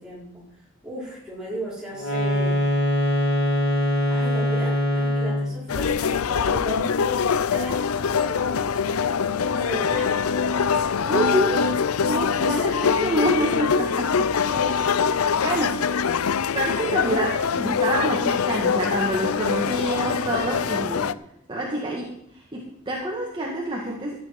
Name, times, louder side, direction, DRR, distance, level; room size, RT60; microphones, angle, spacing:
voice 1, 0.0-2.6 4.1-9.0 9.3-10.9 12.4-14.1 14.4-15.3, equal, 5° right, -6 dB, 5.2 m, -36 dB
sound 1, 1.9-5.6, equal, 65° left, 4.2 m, -22 dB
sound 2, 5.7-21.1, left 6 dB, 85° left, 0.5 m, -23 dB
voice 2, 11.0-12.6 13.0-13.7 14.0-14.1 14.7-14.8 15.4-15.9 16.5-21.1 21.5-22.1 22.5-24.2, right 1 dB, 25° right, -2 dB, 1.9 m, -27 dB
14.0 x 9.2 x 5.9 m, 0.75 s
head